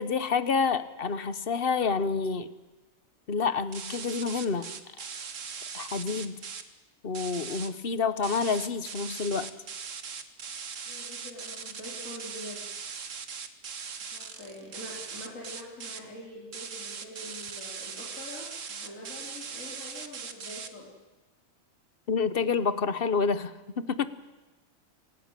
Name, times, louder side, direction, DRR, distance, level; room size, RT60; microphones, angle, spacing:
voice 1, 0.0-2.5 3.3-4.7 5.7-6.4 7.0-9.5 22.1-24.1, left 5 dB, 45° left, 13 dB, 1.2 m, -28 dB
sound 1, 3.7-6.6 7.1-7.7 8.2-16.0 16.5-20.7, right 6 dB, 65° right, 1.7 m, -40 dB
voice 2, 10.9-12.6 14.1-20.9, left 1 dB, 70° left, -4 dB, 4.4 m, -45 dB
26.0 x 16.5 x 9.0 m, 1.2 s
omnidirectional pair, 1.4 m